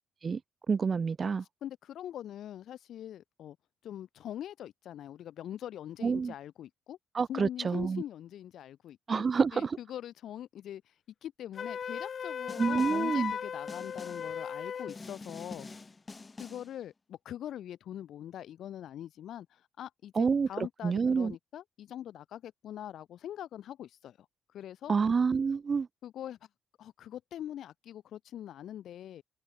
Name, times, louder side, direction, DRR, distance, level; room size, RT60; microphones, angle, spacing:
voice 1, 0.7-1.4 6.0-6.3 7.1-8.0 9.1-9.8 12.6-13.3 20.2-20.5 20.8-21.3 24.9-25.9, right 5 dB, 40° right, 0.9 m, -28 dB
voice 2, 1.6-3.6 3.8-7.0 7.3-9.2 9.5-10.9 11.2-15.7 16.4-24.2 24.5-24.9 26.0-26.4 26.8-29.2, left 11 dB, 70° left, 4.7 m, -43 dB
Wind instrument woodwind instrument, 11.5-15.0, left 7 dB, 50° left, 0.8 m, -36 dB
Snare drum, 12.5-13.2 13.7-14.4 14.9-16.8, left 3 dB, 25° left, 1.7 m, -47 dB
cardioid pair, 90°, 0 cm